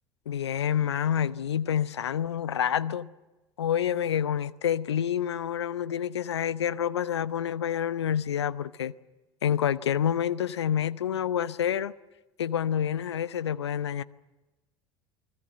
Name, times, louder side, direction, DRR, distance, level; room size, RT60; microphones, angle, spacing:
voice 1, 0.3-3.1 3.6-8.9 9.4-11.9 12.4-14.0, left 9 dB, 75° left, 0.8 m, -28 dB
29.5 x 20.5 x 7.8 m
figure-of-eight pair, 65°, 14 cm